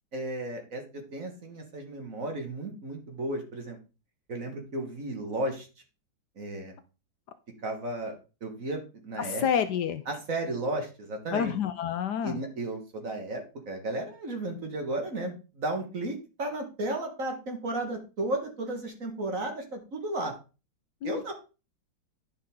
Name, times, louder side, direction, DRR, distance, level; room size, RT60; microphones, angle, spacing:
voice 1, 0.1-3.8 4.3-5.7 6.4-6.7 7.6-9.5 10.1-11.5 12.2-20.3 21.0-21.3, right 2 dB, 45° right, 4 dB, 1.9 m, -34 dB
voice 2, 9.2-10.0 11.3-12.4 21.0-21.3, left 8 dB, 70° left, 11 dB, 1.1 m, -29 dB
10.0 x 5.6 x 3.6 m, 0.32 s
omnidirectional pair, 2.0 m